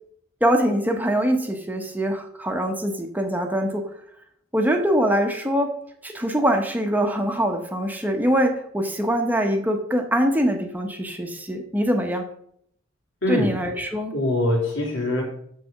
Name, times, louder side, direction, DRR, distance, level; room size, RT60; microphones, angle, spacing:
voice 1, 0.4-3.8 4.5-5.7 6.0-12.2 13.3-14.1, equal, 10° right, 3 dB, 0.9 m, -23 dB
voice 2, 13.2-13.6 14.1-15.2, left 1 dB, 70° left, -1 dB, 3.1 m, -23 dB
7.4 x 4.8 x 6.7 m, 0.68 s
head